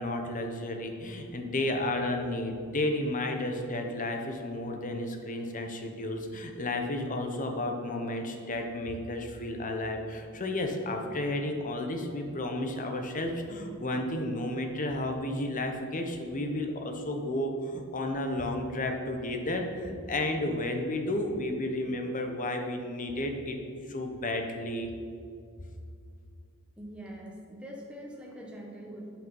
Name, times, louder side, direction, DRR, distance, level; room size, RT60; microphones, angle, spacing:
voice 1, 0.0-23.6 23.9-24.9, left 1 dB, 35° left, 4 dB, 0.9 m, -32 dB
voice 2, 26.8-29.2, equal, 5° right, -2 dB, 1.1 m, -43 dB
8.3 x 6.0 x 5.4 m, 2.3 s
head